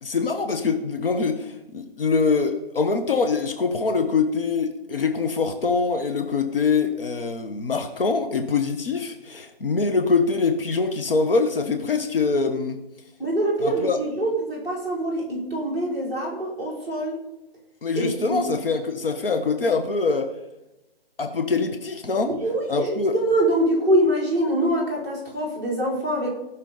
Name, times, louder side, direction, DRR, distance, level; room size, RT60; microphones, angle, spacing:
voice 1, 0.0-12.8 13.6-14.0 17.8-20.3 21.2-22.3 22.7-23.1, left 4 dB, 65° left, 5 dB, 1.3 m, -24 dB
voice 2, 13.2-17.2 18.0-18.4 22.2-26.3, right 1 dB, 10° left, -6 dB, 3.6 m, -24 dB
18.5 x 6.3 x 4.0 m, 0.97 s
hypercardioid pair, 155°, 30 cm